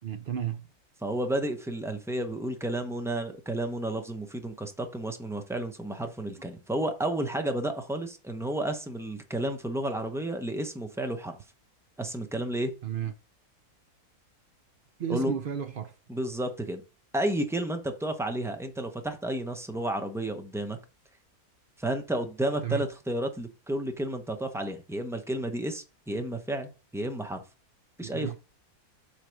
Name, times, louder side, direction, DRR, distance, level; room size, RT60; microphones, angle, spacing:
voice 1, 0.0-0.7 12.8-13.1 15.0-15.9 22.6-22.8 28.0-28.4, right 9 dB, 60° right, 0.5 m, -32 dB
voice 2, 1.0-11.4 12.0-12.7 15.1-15.3 16.1-16.8 17.1-20.8 21.8-27.4 28.0-28.4, right 1 dB, 5° right, 0.5 m, -31 dB
7.3 x 3.4 x 6.3 m
omnidirectional pair, 1.6 m